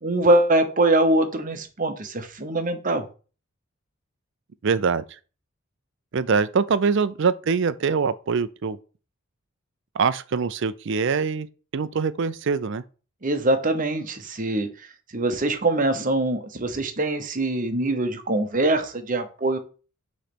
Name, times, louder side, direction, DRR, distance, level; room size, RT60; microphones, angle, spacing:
voice 1, 0.0-3.0 13.2-14.7 15.1-19.6, right 2 dB, 40° right, 0.9 m, -23 dB
voice 2, 4.6-5.0 6.1-8.8 9.9-11.5 11.7-12.8, right 5 dB, 60° right, 0.5 m, -23 dB
6.5 x 3.2 x 6.0 m
head